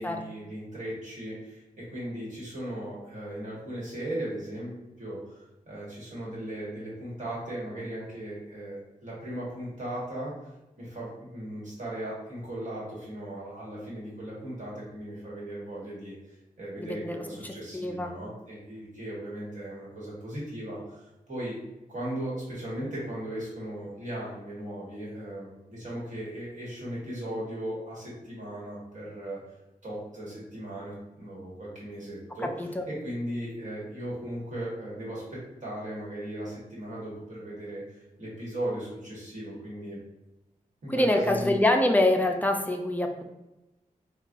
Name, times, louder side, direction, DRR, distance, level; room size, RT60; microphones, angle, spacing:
voice 1, 0.0-10.3 10.8-16.1 16.6-21.5 21.9-29.4 29.8-35.2 35.6-40.0 40.8-41.6, right 1 dB, 60° right, -6 dB, 1.4 m, -37 dB
voice 2, 16.8-18.1 32.6-32.8 40.9-43.2, left 1 dB, 10° left, 3 dB, 0.3 m, -25 dB
4.0 x 2.3 x 2.5 m, 0.98 s
wide cardioid pair, 135°, 15 cm